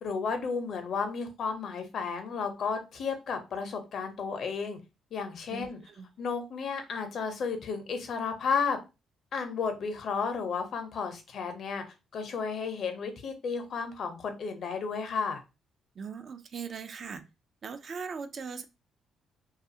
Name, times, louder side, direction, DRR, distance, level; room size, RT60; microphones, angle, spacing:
voice 1, 0.0-4.8 5.1-5.8 6.2-8.8 9.3-11.8 12.1-15.4, left 5 dB, 60° left, 6 dB, 0.6 m, -33 dB
voice 2, 5.5-6.1 16.0-17.2 17.6-18.6, right 5 dB, 50° right, 9 dB, 0.4 m, -39 dB
2.3 x 2.3 x 2.7 m, 0.27 s
cardioid pair, 90°, 0 cm